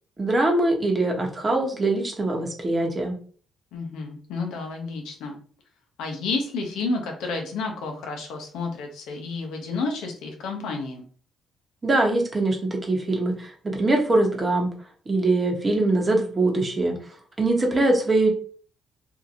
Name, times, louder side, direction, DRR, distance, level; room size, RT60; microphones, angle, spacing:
voice 1, 0.2-3.2 11.8-14.7 15.1-16.9 17.4-18.3, right 2 dB, 25° right, 1 dB, 0.9 m, -22 dB
voice 2, 3.7-5.3 6.0-11.0, left 3 dB, 90° left, 3 dB, 0.7 m, -30 dB
2.8 x 2.5 x 2.5 m, 0.43 s
cardioid pair, 90°, 0 cm